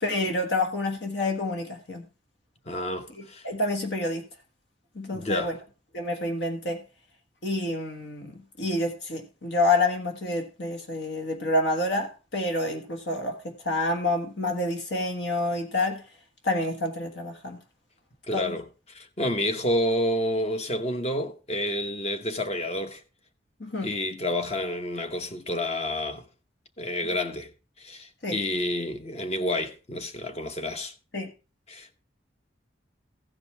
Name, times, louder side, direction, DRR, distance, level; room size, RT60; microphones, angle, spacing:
voice 1, 0.0-2.0 3.2-4.3 4.9-5.6 5.9-6.8 7.4-16.0 16.4-17.6 18.3-18.5 23.6-23.9 28.2-28.4 31.1-31.3, left 2 dB, 70° left, 1.6 m, -28 dB
voice 2, 2.7-3.4 5.1-5.5 18.3-23.0 23.8-26.3 26.8-27.5 27.8-30.9 31.7-32.0, left 1 dB, 35° left, 1.0 m, -29 dB
15.0 x 5.3 x 4.4 m
head